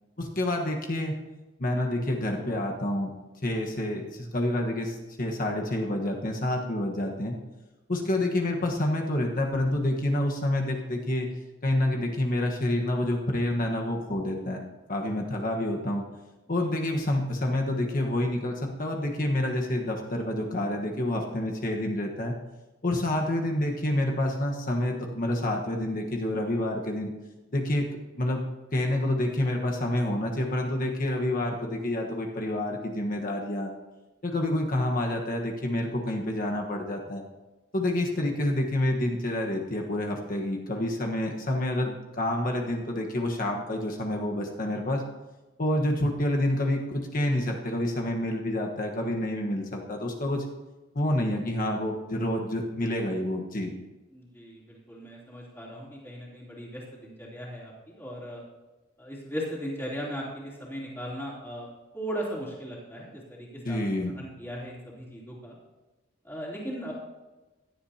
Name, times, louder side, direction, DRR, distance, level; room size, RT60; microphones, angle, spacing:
voice 1, 0.2-1.1 1.6-3.1 3.4-7.4 7.9-11.3 11.6-14.6 14.9-16.0 16.5-22.3 22.8-27.1 27.5-27.9 28.1-28.4 28.7-33.7 34.2-37.2 37.7-45.0 45.6-50.4 50.9-53.7 63.6-64.1, left 1 dB, 45° left, 1 dB, 1.3 m, -28 dB
voice 2, 54.1-58.4 59.0-61.7 61.9-63.8 64.2-65.6 66.2-66.9, equal, 10° left, -6 dB, 3.2 m, -37 dB
16.5 x 11.5 x 2.9 m, 1.1 s
head